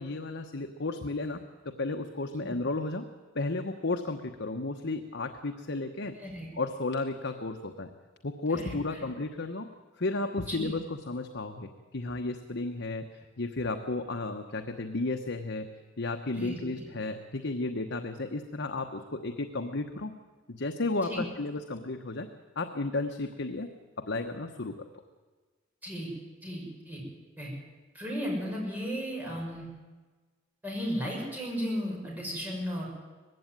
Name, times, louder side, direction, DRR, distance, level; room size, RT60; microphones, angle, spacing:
voice 1, 0.0-3.0 3.3-6.2 6.6-7.9 8.2-9.7 10.0-13.1 13.4-15.7 16.0-20.1 20.5-22.3 22.6-23.7 24.0-24.8, left 2 dB, 60° left, 5 dB, 1.1 m, -33 dB
voice 2, 6.1-6.5 8.5-9.0 10.5-10.7 16.3-16.8 21.0-21.2 25.8-26.1 26.4-27.0 27.4-27.5 27.9-29.7 30.6-32.9, equal, 10° right, -3 dB, 6.3 m, -35 dB
20.0 x 15.5 x 9.2 m, 1.3 s
head